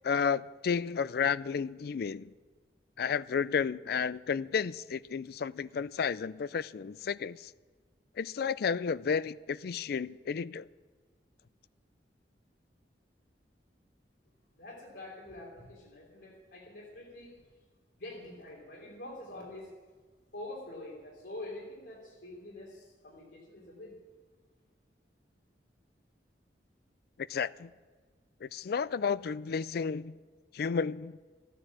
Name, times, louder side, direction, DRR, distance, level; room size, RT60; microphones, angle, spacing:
voice 1, 0.0-2.3 3.0-7.5 8.2-10.7 27.2-27.7 28.4-30.2 30.5-31.2, left 6 dB, 60° left, 0.4 m, -32 dB
voice 2, 14.6-17.4 18.0-19.7 20.3-24.0, left 1 dB, 80° left, 3.6 m, -46 dB
14.0 x 10.0 x 7.5 m
head